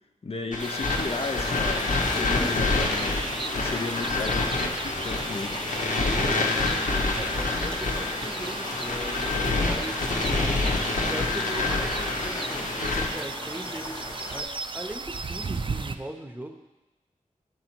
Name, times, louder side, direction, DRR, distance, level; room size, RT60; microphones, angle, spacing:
voice 1, 0.2-3.2 3.5-5.6, left 3 dB, 50° left, 5 dB, 0.5 m, -34 dB
sound 1, 0.5-13.1, left 3 dB, 90° left, 1.0 m, -27 dB
sound 2, 0.6-16.0, right 4 dB, 40° right, 0.4 m, -37 dB
sound 3, 0.9-14.4, left 1 dB, 30° left, 0.9 m, -38 dB
voice 2, 6.0-14.0 14.3-16.6, right 1 dB, 10° right, 4 dB, 0.8 m, -39 dB
11.0 x 4.0 x 4.4 m, 1.1 s
wide cardioid pair, 65°, 13 cm